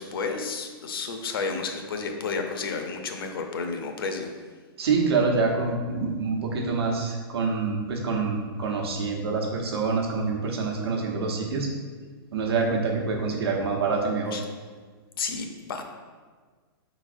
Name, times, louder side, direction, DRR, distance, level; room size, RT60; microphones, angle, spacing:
voice 1, 0.0-4.3 14.3-14.4 15.2-15.8, left 4 dB, 65° left, 5 dB, 0.6 m, -31 dB
voice 2, 4.8-11.7 12.3-14.3, right 4 dB, 85° right, 0 dB, 1.0 m, -26 dB
4.8 x 4.0 x 2.6 m, 1.5 s
hypercardioid pair, 175°, 13 cm